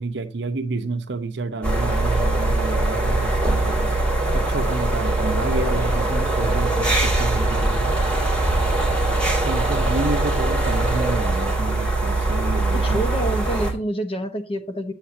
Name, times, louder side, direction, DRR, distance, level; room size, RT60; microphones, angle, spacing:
voice 1, 0.0-3.9 4.3-7.9 9.4-13.0, right 3 dB, 70° right, 0.8 m, -29 dB
sound 1, 1.6-13.7, right 2 dB, 5° left, 2.1 m, -21 dB
voice 2, 12.7-14.9, right 1 dB, 30° left, 0.9 m, -27 dB
8.1 x 7.1 x 2.6 m
head